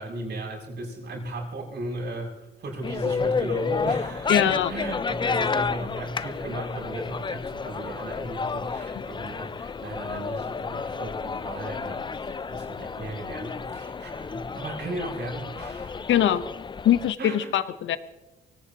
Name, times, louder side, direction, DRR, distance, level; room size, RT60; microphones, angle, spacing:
voice 1, 0.0-16.1 17.2-17.5, right 2 dB, 60° right, -2 dB, 7.4 m, -36 dB
sound 1, 2.8-17.1, left 5 dB, 25° left, 0.5 m, -31 dB
voice 2, 4.3-4.7 16.1-16.4 16.8-18.0, left 11 dB, 75° left, 12 dB, 1.0 m, -22 dB
25.0 x 18.0 x 3.0 m, 1.0 s
cardioid pair, 90°, 20 cm